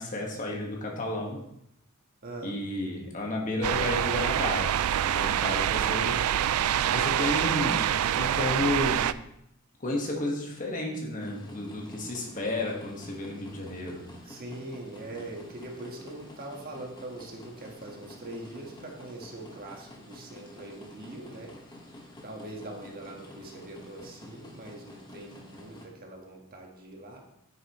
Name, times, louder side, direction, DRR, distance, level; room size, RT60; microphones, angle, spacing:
voice 1, 0.0-1.4 2.4-6.2 6.9-9.1 9.8-14.3, left 2 dB, 40° left, -1 dB, 1.5 m, -32 dB
voice 2, 2.2-2.6 14.2-21.6 22.2-27.2, right 2 dB, 45° right, 0 dB, 1.5 m, -42 dB
sound 1, 3.6-9.1, right 10 dB, 85° right, 0.3 m, -26 dB
sound 2, 11.2-25.9, left 1 dB, 20° left, 1.3 m, -49 dB
9.2 x 6.8 x 3.1 m, 0.77 s
head